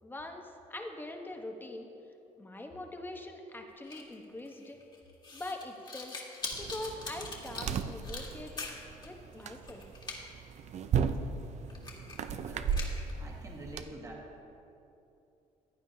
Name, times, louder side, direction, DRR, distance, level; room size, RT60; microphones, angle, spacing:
voice 1, 0.0-1.9 2.4-4.8 5.3-6.1 6.6-9.8, left 1 dB, 15° left, 3 dB, 1.0 m, -43 dB
sound 1, 3.8-9.1 9.3-10.2 10.6-10.7 11.1-11.2 11.7-12.3 12.6-13.1, left 3 dB, 30° left, 1.8 m, -42 dB
sound 2, 6.5-13.8, right 6 dB, 50° right, 0.5 m, -36 dB
voice 2, 12.4-12.8 13.2-14.3, equal, 25° right, -1 dB, 1.6 m, -45 dB
15.0 x 9.6 x 2.8 m, 2.8 s
cardioid pair, 95°, 14 cm